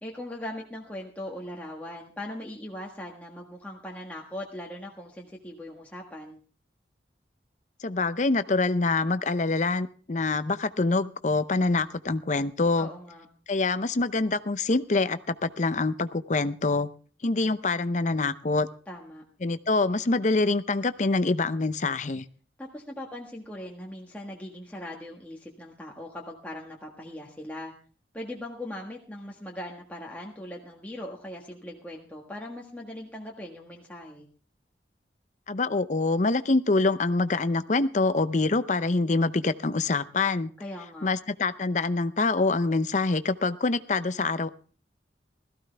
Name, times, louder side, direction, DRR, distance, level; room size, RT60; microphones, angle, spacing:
voice 1, 0.0-6.4 12.8-13.3 18.9-19.2 22.6-27.7 28.1-34.3 40.6-41.1, left 1 dB, 10° left, -2 dB, 1.5 m, -40 dB
voice 2, 7.8-12.9 13.5-16.9 17.2-18.7 19.4-22.2 35.5-40.5 41.0-44.5, left 3 dB, 40° left, 13 dB, 0.6 m, -25 dB
17.0 x 14.5 x 3.4 m, 0.40 s
head